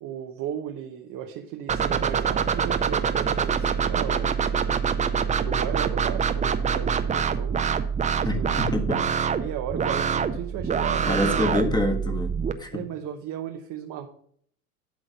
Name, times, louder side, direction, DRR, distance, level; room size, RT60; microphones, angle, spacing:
voice 1, 0.0-4.3 5.4-7.7 8.3-8.8 9.4-11.6 12.7-14.1, right 9 dB, 45° right, 3 dB, 1.0 m, -35 dB
sound 1, 1.7-12.5, right 6 dB, 15° right, 0.5 m, -25 dB
voice 2, 8.3-9.2 11.1-12.8, left 1 dB, 10° left, 5 dB, 1.5 m, -27 dB
11.5 x 3.9 x 5.2 m, 0.62 s
hypercardioid pair, 75°, 44 cm